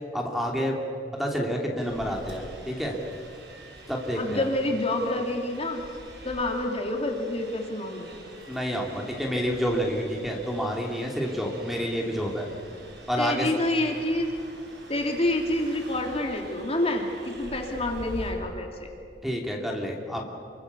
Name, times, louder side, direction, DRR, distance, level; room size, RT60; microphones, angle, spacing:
voice 1, 0.1-0.8 1.2-3.0 3.9-4.4 8.5-12.5 13.1-13.5 19.2-20.2, equal, ahead, 0 dB, 3.0 m, -29 dB
sound 1, 1.8-18.3, right 1 dB, 70° right, 5.1 m, -45 dB
voice 2, 4.2-5.8 6.2-8.2 13.2-14.3 14.9-18.9, left 1 dB, 35° left, 2 dB, 3.1 m, -28 dB
28.5 x 24.5 x 7.0 m, 2.4 s
head